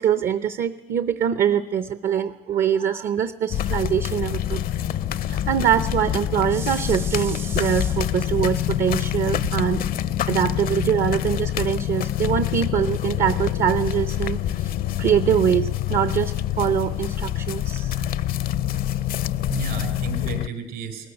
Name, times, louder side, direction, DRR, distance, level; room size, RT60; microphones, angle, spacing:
voice 1, 0.0-4.6 5.3-9.8 10.3-14.7 15.0-18.0, right 9 dB, 55° right, 13 dB, 0.7 m, -23 dB
sound 1, 3.5-20.5, left 11 dB, 60° left, 0.6 m, -26 dB
voice 2, 19.5-21.1, right 7 dB, 75° right, 8 dB, 4.3 m, -33 dB
19.0 x 14.5 x 9.8 m, 1.1 s
cardioid pair, 110°, 17 cm